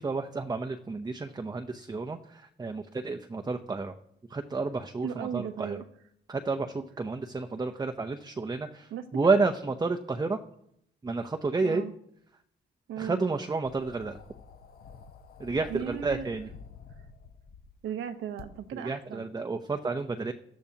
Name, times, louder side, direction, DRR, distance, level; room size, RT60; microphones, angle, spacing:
voice 1, 0.0-3.9 4.3-5.8 6.3-8.9 9.1-10.4 11.0-11.8 13.0-14.2 15.4-16.5 18.8-20.3, right 3 dB, 20° right, 6 dB, 0.7 m, -30 dB
voice 2, 5.0-5.9 8.9-9.1 9.3-9.4 11.6-11.9 12.9-13.2 15.7-16.3 17.8-19.3, right 9 dB, 80° right, 9 dB, 1.0 m, -36 dB
sound 1, 13.6-17.8 18.4-18.5, left 6 dB, 50° left, 0.9 m, -49 dB
17.5 x 12.0 x 2.9 m, 0.74 s
cardioid pair, 90°, 20 cm